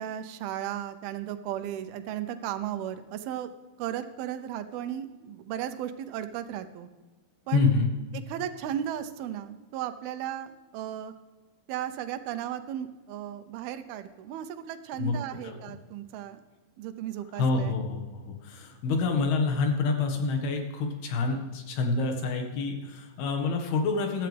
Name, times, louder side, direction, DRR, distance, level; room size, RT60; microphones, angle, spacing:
voice 1, 0.0-3.5 3.8-6.9 7.5-7.7 8.3-11.1 11.7-16.4 16.8-17.8, right 10 dB, 80° right, 10 dB, 2.7 m, -35 dB
voice 2, 7.5-7.9 15.0-15.1 15.4-15.6 17.4-24.3, left 4 dB, 85° left, 3 dB, 3.6 m, -27 dB
15.5 x 13.0 x 3.4 m, 1.2 s
omnidirectional pair, 4.4 m